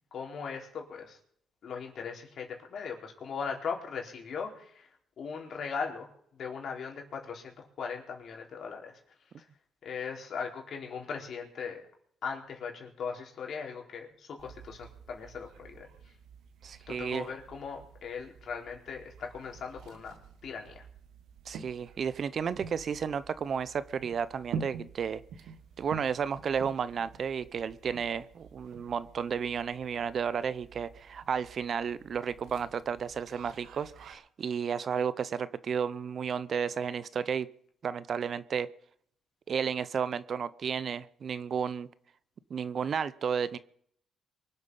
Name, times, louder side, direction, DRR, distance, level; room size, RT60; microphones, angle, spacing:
voice 1, 0.1-1.2 1.6-4.9 5.2-6.1 6.3-9.0 9.4-9.5 9.8-11.8 12.2-15.9 16.9-20.1 20.4-20.8, left 6 dB, 60° left, 1 dB, 4.1 m, -39 dB
sound 1, 14.4-34.1, right 6 dB, 85° right, 1.6 m, -48 dB
voice 2, 16.6-17.3 21.5-25.2 25.8-37.5 37.8-38.7 39.5-41.9 42.5-43.6, right 7 dB, 55° right, 16 dB, 0.7 m, -32 dB
24.0 x 8.0 x 5.6 m, 0.66 s
cardioid pair, 90°, 0 cm